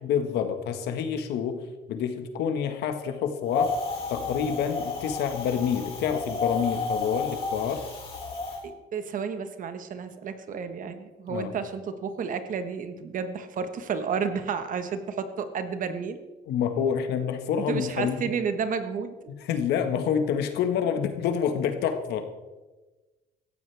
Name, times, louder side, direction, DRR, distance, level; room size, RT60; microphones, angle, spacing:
voice 1, 0.0-1.6 1.9-3.7 4.1-7.8 11.3-11.5 16.5-18.3 19.5-22.3, left 8 dB, 80° left, 7 dB, 1.6 m, -27 dB
Wind, 3.5-8.6, left 4 dB, 35° left, 5.0 m, -32 dB
voice 2, 8.6-16.2 17.6-19.1, right 6 dB, 50° right, 9 dB, 1.4 m, -31 dB
17.5 x 14.5 x 3.5 m, 1.2 s
cardioid pair, 110°, 17 cm